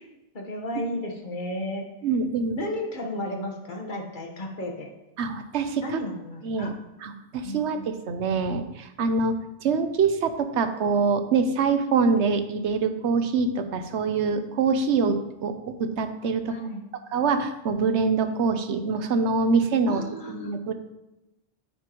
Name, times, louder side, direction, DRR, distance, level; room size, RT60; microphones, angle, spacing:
voice 1, 0.0-1.8 2.6-4.9 5.8-6.7 7.4-7.9 16.5-16.8 19.9-20.5, left 1 dB, 45° left, 1 dB, 1.4 m, -33 dB
voice 2, 2.0-2.6 5.2-6.0 6.4-6.7 7.0-16.6 17.1-20.7, right 4 dB, 80° right, 8 dB, 1.1 m, -25 dB
9.4 x 8.4 x 3.0 m, 0.94 s
omnidirectional pair, 1.2 m